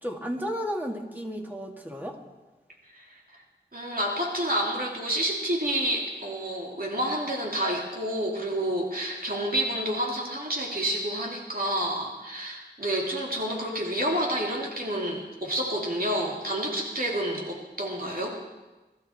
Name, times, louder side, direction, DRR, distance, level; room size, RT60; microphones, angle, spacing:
voice 1, 0.0-2.2, equal, 10° right, 1 dB, 2.4 m, -33 dB
voice 2, 3.7-18.4, right 1 dB, 55° right, -2 dB, 2.8 m, -29 dB
23.0 x 12.5 x 4.4 m, 1.1 s
wide cardioid pair, 40°, 18 cm